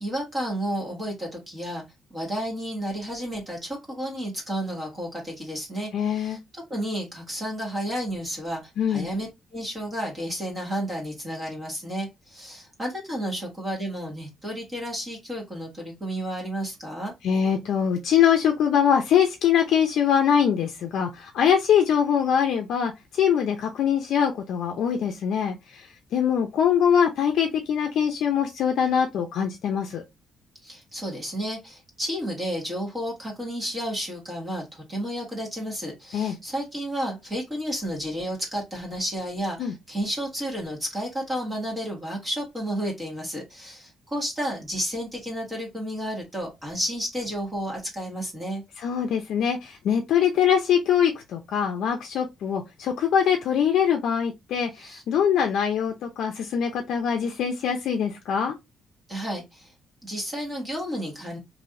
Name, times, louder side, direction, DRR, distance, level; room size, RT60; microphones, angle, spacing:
voice 1, 0.0-1.8 2.1-6.4 6.7-17.1 30.6-48.6 54.7-55.0 59.1-59.7 60.0-61.4, equal, 20° right, 1.4 m, -32 dB
voice 2, 5.9-6.4 8.8-9.1 17.2-25.9 26.1-30.0 36.1-36.4 39.6-39.7 48.8-58.5, left 8 dB, 65° left, 0.5 m, -23 dB
3.2 x 2.7 x 2.6 m
cardioid pair, 155°, 0 cm